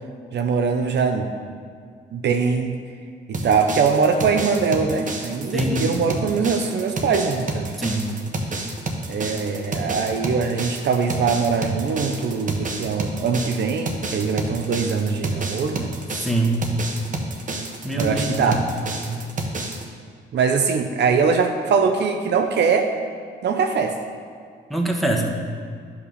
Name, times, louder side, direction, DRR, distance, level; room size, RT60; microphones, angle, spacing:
voice 1, 0.3-1.5 2.1-2.7 3.3-7.8 9.1-15.9 18.0-18.7 20.3-22.9 23.4-24.0, right 5 dB, 60° right, 6 dB, 0.8 m, -22 dB
sound 1, 3.3-19.8, right 2 dB, 40° right, 1.2 m, -30 dB
voice 2, 5.5-5.9 7.8-8.1 16.2-16.6 17.8-18.6 19.0-19.2 24.7-25.3, right 2 dB, ahead, 0 dB, 1.4 m, -24 dB
12.0 x 5.7 x 4.1 m, 2.1 s
cardioid pair, 90°, 20 cm